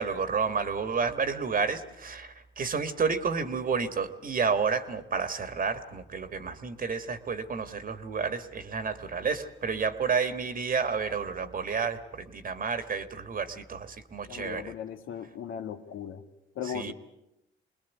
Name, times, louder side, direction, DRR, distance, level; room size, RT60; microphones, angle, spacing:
voice 1, 0.0-14.7 16.7-16.9, right 5 dB, 45° right, 10 dB, 1.8 m, -30 dB
voice 2, 14.3-16.2 16.6-16.9, left 8 dB, 85° left, 7 dB, 1.8 m, -37 dB
25.5 x 20.5 x 8.3 m, 0.86 s
cardioid pair, 90°, 20 cm